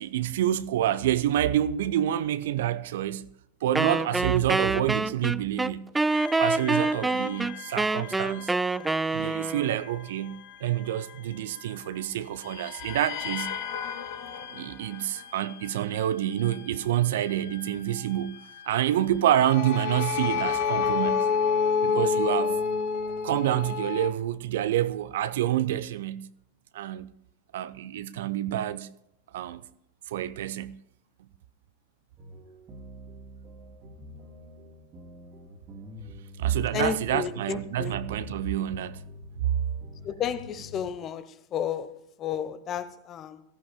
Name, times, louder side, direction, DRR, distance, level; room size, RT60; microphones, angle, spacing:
voice 1, 0.0-3.3 3.6-5.9 6.4-8.5 9.1-13.5 14.5-21.3 21.8-22.6 23.2-26.3 26.7-27.1 27.5-28.9 29.3-29.6 30.1-30.8 36.4-39.0, right 12 dB, 60° right, 0.6 m, -28 dB
Wind instrument woodwind instrument, 3.7-9.8, right 3 dB, 10° right, 0.4 m, -26 dB
sound 1, 6.1-12.0 12.4-24.1, left 6 dB, 55° left, 1.8 m, -32 dB
sound 2, 32.2-40.8, left 1 dB, 35° right, 2.4 m, -46 dB
voice 2, 36.7-38.0 40.0-43.4, left 8 dB, 30° left, 1.0 m, -32 dB
21.5 x 15.0 x 2.2 m
figure-of-eight pair, 95°, 0 cm